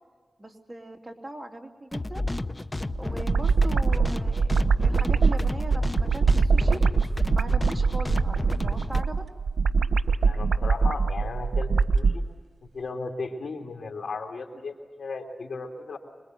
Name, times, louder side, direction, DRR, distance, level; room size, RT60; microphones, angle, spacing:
voice 1, 0.4-2.2 3.0-6.8 7.3-9.2, right 1 dB, 25° right, 2 dB, 3.0 m, -39 dB
sound 1, 1.9-9.0, left 2 dB, 25° left, 0.7 m, -32 dB
sound 2, 2.9-12.2, right 4 dB, 90° right, 0.9 m, -23 dB
voice 2, 10.3-11.7 11.9-12.3 12.7-16.0, left 3 dB, 85° left, 4 dB, 3.0 m, -35 dB
26.0 x 22.0 x 8.1 m, 1.5 s
wide cardioid pair, 70°, 0 cm